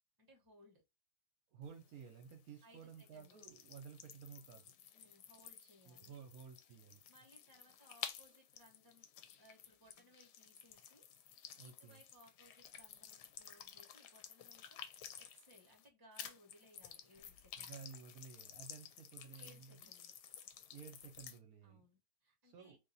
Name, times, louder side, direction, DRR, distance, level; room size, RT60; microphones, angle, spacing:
voice 1, 0.2-0.8 2.6-3.4 4.9-6.2 7.1-9.1 9.4-11.0 11.6-14.8 15.2-17.8 19.4-20.1 21.6-22.8, equal, 15° right, 1.0 m, -65 dB
voice 2, 1.5-4.7 5.9-7.0 11.5-12.0 17.6-19.9 20.7-21.9 22.4-22.8, right 6 dB, 70° right, 1.1 m, -54 dB
sound 1, 1.6-15.9 16.1-21.4, left 9 dB, 85° left, 1.2 m, -54 dB
2.8 x 2.8 x 3.9 m
omnidirectional pair, 1.7 m